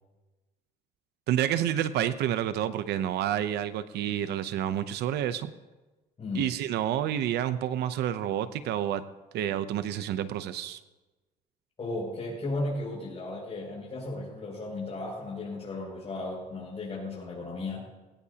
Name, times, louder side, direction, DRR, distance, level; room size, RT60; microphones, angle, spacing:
voice 1, 1.3-5.5 6.3-9.0 9.3-10.8, right 11 dB, 75° right, 12 dB, 0.7 m, -29 dB
voice 2, 6.2-6.5 11.8-17.8, left 2 dB, 35° left, -7 dB, 6.4 m, -35 dB
21.0 x 17.0 x 2.9 m, 1.2 s
cardioid pair, 110°, 17 cm